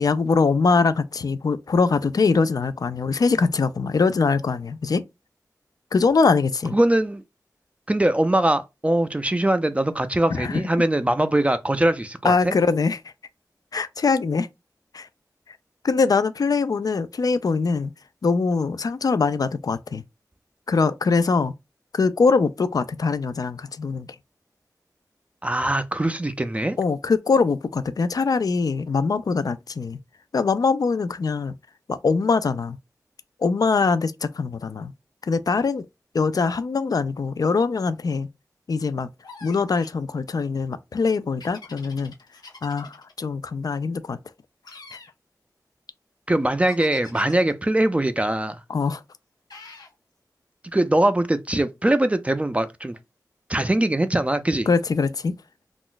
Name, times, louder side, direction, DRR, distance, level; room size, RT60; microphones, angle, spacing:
voice 1, 0.0-5.0 5.9-6.8 10.3-10.6 12.2-13.0 13.7-14.5 14.9-15.1 15.8-17.9 18.2-20.0 20.7-21.5 21.9-24.1 26.8-30.0 30.3-31.5 31.9-32.8 33.4-34.9 35.3-35.9 36.1-38.3 38.7-39.1 39.4-42.1 42.6-44.2 48.7-49.0 54.7-55.3, left 4 dB, 65° left, 0.3 m, -22 dB
voice 2, 6.7-7.2 7.9-12.5 25.4-26.8 46.3-48.6 50.7-53.0 53.5-54.7, right 1 dB, 20° right, 0.3 m, -22 dB
sound 1, 39.2-40.0 41.4-43.1 44.6-45.1 46.7-47.5 49.5-49.9, left 4 dB, 85° left, 0.7 m, -44 dB
2.4 x 2.0 x 3.8 m
wide cardioid pair, 60°, 7 cm